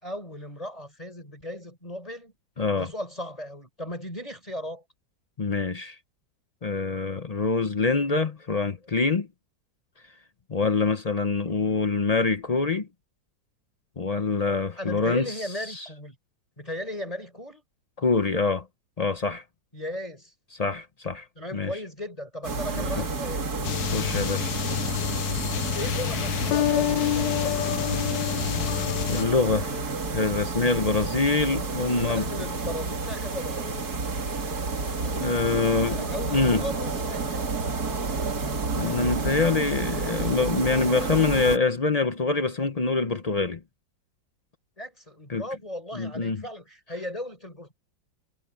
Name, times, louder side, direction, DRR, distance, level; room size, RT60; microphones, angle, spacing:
voice 1, 0.0-2.3 2.8-4.8 11.5-11.6 14.8-16.1 16.6-17.6 19.7-20.3 21.4-23.4 25.7-27.6 32.1-33.7 35.8-37.4 44.8-47.7, left 1 dB, 20° left, 4.9 m, -36 dB
voice 2, 2.6-2.9 5.4-6.0 6.6-9.3 10.5-12.9 14.0-15.3 15.7-15.9 18.0-18.6 19.0-19.4 20.6-21.2 21.5-21.7 22.8-23.0 23.9-24.5 29.1-32.3 35.0-36.6 38.7-43.6 45.3-45.4 45.9-46.4, left 4 dB, 50° left, 0.4 m, -25 dB
sound 1, 22.4-41.6, right 4 dB, 55° right, 2.8 m, -30 dB
sound 2, 23.6-29.2, left 13 dB, 75° left, 1.3 m, -27 dB
omnidirectional pair, 2.0 m